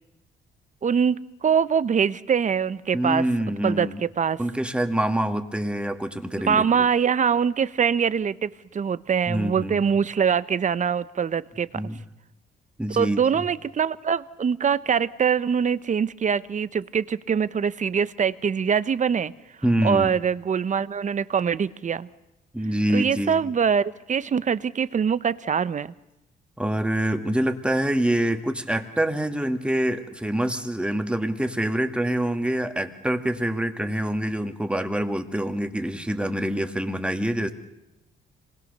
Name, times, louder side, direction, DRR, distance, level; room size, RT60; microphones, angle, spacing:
voice 1, 0.8-3.2 3.6-4.4 6.5-11.7 13.0-19.3 19.8-22.1 22.9-25.9, right 7 dB, 40° right, 16 dB, 0.8 m, -23 dB
voice 2, 2.9-4.0 4.4-6.9 9.3-9.8 11.7-12.0 12.8-13.2 19.6-20.1 22.5-23.5 26.6-37.5, right 1 dB, 5° right, 6 dB, 2.0 m, -25 dB
26.0 x 20.5 x 6.7 m, 0.93 s
cardioid pair, 90°, 20 cm